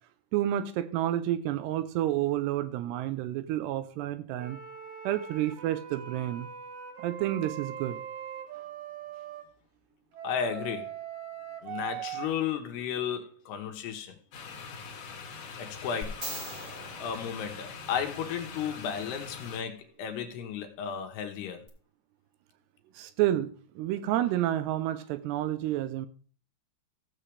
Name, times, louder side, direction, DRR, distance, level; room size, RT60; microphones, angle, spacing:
voice 1, 0.3-4.6 5.0-6.5 7.0-8.0 23.0-26.1, right 13 dB, 80° right, 2.7 m, -30 dB
sound 1, 4.4-9.4 10.1-12.3, right 9 dB, 65° right, 2.5 m, -41 dB
voice 2, 10.2-10.9 11.6-14.2 15.6-16.3 17.0-21.7, left 8 dB, 75° left, 3.0 m, -34 dB
sound 2, 14.3-19.6, left 5 dB, 55° left, 2.4 m, -43 dB
sound 3, 16.0-18.3 21.7-21.8, right 1 dB, 30° right, 1.0 m, -41 dB
16.0 x 7.3 x 3.3 m
omnidirectional pair, 4.9 m